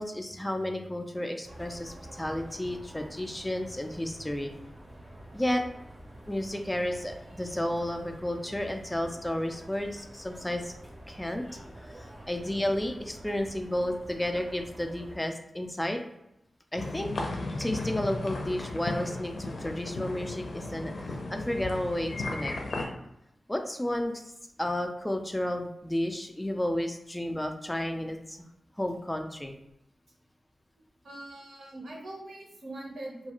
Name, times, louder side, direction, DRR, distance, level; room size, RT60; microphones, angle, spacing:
voice 1, 0.0-4.5 5.3-5.6 6.3-10.7 11.1-11.4 11.8-16.0 16.7-17.1 17.6-22.5 23.5-24.2 24.6-28.4 28.8-29.5, left 1 dB, 10° left, 4 dB, 0.3 m, -32 dB
sound 1, 1.4-15.2, right 1 dB, 25° right, 0.6 m, -48 dB
sound 2, 16.8-22.9, left 2 dB, 70° left, 0.5 m, -35 dB
voice 2, 31.0-33.3, right 1 dB, 75° right, -2 dB, 0.8 m, -42 dB
2.3 x 2.3 x 2.9 m, 0.83 s
wide cardioid pair, 80°, 0 cm